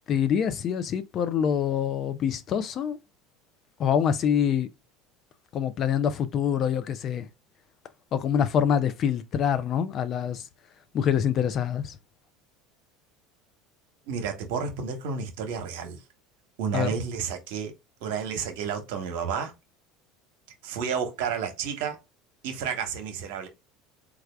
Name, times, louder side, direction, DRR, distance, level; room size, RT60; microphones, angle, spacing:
voice 1, 0.1-3.0 3.8-4.7 5.5-7.3 8.1-10.4 10.9-12.0 16.7-16.9, left 8 dB, 45° left, 0.4 m, -25 dB
voice 2, 14.1-16.0 16.6-17.7 18.0-19.5 20.6-22.0 22.4-23.5, right 6 dB, 75° right, 0.9 m, -31 dB
3.3 x 2.4 x 3.3 m
hypercardioid pair, 90°, 0 cm